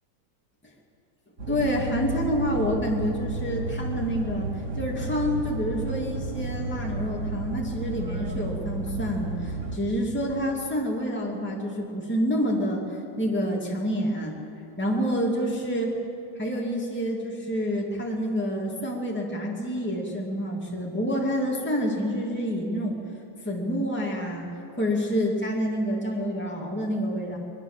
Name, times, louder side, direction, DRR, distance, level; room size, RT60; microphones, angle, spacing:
sound 1, 1.4-9.8, right 2 dB, 45° right, 2.4 m, -32 dB
voice 1, 1.5-4.5 4.8-14.4 14.8-16.0 16.4-23.0 23.4-24.5 24.8-27.4, equal, 5° left, -2 dB, 2.7 m, -28 dB
22.5 x 22.0 x 7.6 m, 2.8 s
omnidirectional pair, 1.8 m